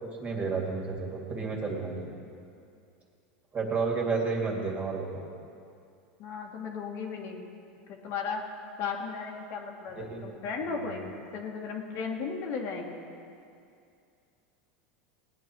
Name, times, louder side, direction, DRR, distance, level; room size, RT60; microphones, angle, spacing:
voice 1, 0.0-2.1 3.5-5.2 10.0-10.4, right 4 dB, 25° right, -1 dB, 2.6 m, -31 dB
voice 2, 6.2-7.4 7.9-8.4 8.8-13.0, left 5 dB, 50° left, 1 dB, 1.7 m, -35 dB
19.0 x 9.8 x 4.6 m, 2.5 s
supercardioid pair, 120°, 6 cm